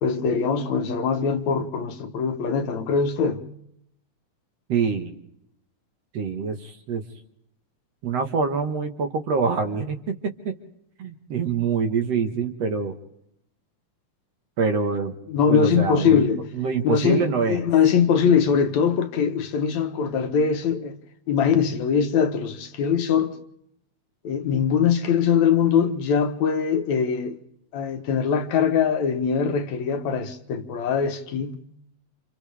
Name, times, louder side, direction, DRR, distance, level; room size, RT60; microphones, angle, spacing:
voice 1, 0.0-3.4 15.3-16.4 16.8-21.0 21.3-23.3 24.2-27.4 27.7-31.6, left 7 dB, 70° left, 2.2 m, -22 dB
voice 2, 4.7-5.2 6.1-7.0 8.0-10.0 10.4-10.5 11.0-12.9 14.6-15.2 15.5-16.2 16.5-17.7, right 5 dB, 60° right, 2.3 m, -25 dB
30.0 x 27.0 x 3.4 m
omnidirectional pair, 3.6 m